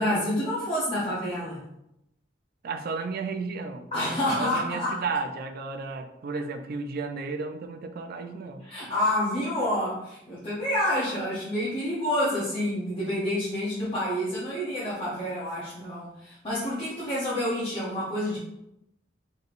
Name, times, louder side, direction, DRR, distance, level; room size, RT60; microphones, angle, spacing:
voice 1, 0.0-1.6 3.9-5.0 8.6-18.4, left 1 dB, 30° left, -8 dB, 0.9 m, -28 dB
voice 2, 2.6-8.6, right 4 dB, 55° right, 6 dB, 0.4 m, -33 dB
4.7 x 3.2 x 2.5 m, 0.84 s
head